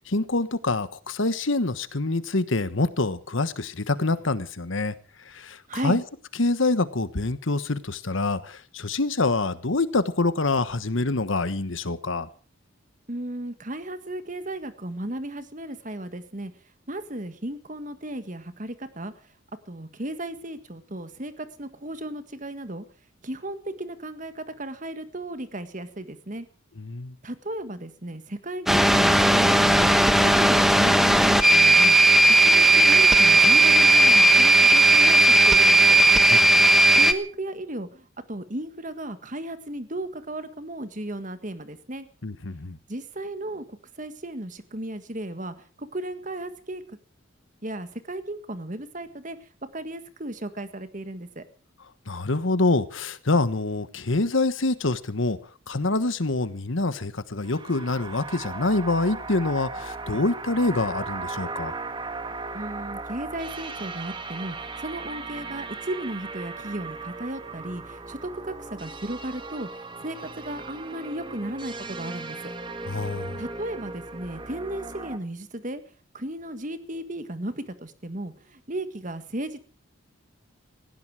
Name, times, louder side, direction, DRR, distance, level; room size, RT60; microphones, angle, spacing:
voice 1, 0.0-4.9 5.3-6.0 6.4-12.3 26.8-27.1 36.3-36.5 42.2-42.8 52.1-55.4 55.7-61.7 72.9-73.4, left 2 dB, 70° left, 1.3 m, -26 dB
voice 2, 5.7-6.0 13.1-16.5 16.9-19.1 19.7-22.8 23.2-26.4 27.2-29.9 30.2-32.0 32.4-36.0 36.9-42.1 42.9-46.8 47.6-49.4 49.7-51.4 62.5-69.7 70.0-72.5 73.4-75.8 76.1-79.6, right 1 dB, 40° right, 1.7 m, -35 dB
sound 1, 28.7-37.1, right 2 dB, ahead, 1.1 m, -16 dB
sound 2, 57.4-75.2, right 3 dB, 25° right, 1.4 m, -37 dB
18.5 x 16.0 x 4.9 m
head